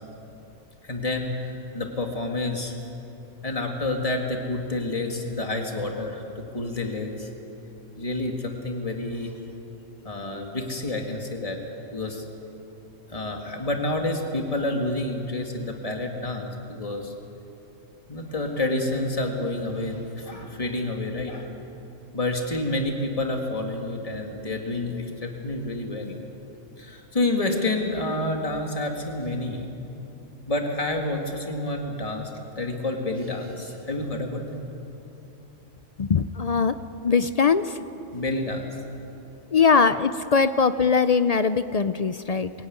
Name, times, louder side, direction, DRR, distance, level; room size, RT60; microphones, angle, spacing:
voice 1, 0.8-2.8 3.4-7.3 7.9-9.3 10.0-11.6 11.9-12.2 13.1-17.1 18.1-21.5 22.1-26.2 26.8-29.7 30.5-32.3 32.6-34.6 38.1-38.7, left 2 dB, 25° left, 2 dB, 2.2 m, -29 dB
voice 2, 36.0-36.8 37.0-37.8 39.5-42.5, left 5 dB, 55° left, 12 dB, 0.4 m, -21 dB
22.5 x 16.0 x 9.5 m, 2.9 s
omnidirectional pair, 1.3 m